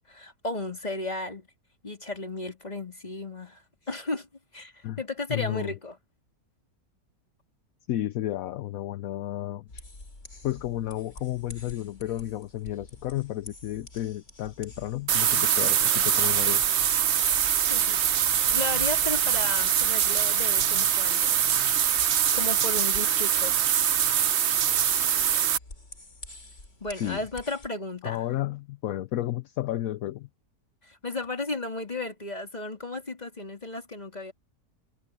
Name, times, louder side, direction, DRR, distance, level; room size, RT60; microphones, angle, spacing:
voice 1, 0.1-1.5 1.8-3.6 3.9-4.3 4.5-6.0 17.7-18.1 18.5-21.4 22.3-23.6 26.8-28.2 30.8-34.3, left 2 dB, 25° left, 3.5 m, -34 dB
voice 2, 5.3-5.8 7.9-9.8 10.4-16.6 27.0-27.2 28.0-30.3, left 13 dB, 65° left, 0.9 m, -32 dB
sound 1, 9.7-27.7, left 2 dB, 40° left, 4.2 m, -47 dB
sound 2, 15.1-25.6, right 9 dB, 55° right, 0.8 m, -23 dB
omnidirectional pair, 1.8 m